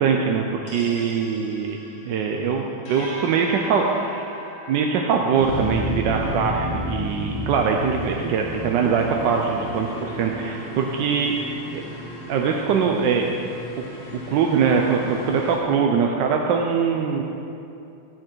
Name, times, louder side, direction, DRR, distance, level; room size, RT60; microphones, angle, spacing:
voice 1, 0.0-1.8 2.0-4.3 4.7-11.4 11.7-11.9 12.3-13.3 14.3-17.2, right 6 dB, 75° right, 1 dB, 1.1 m, -22 dB
sound 1, 0.7-15.6, left 1 dB, 85° left, 2.7 m, -34 dB
9.7 x 7.5 x 4.5 m, 2.7 s
omnidirectional pair, 2.4 m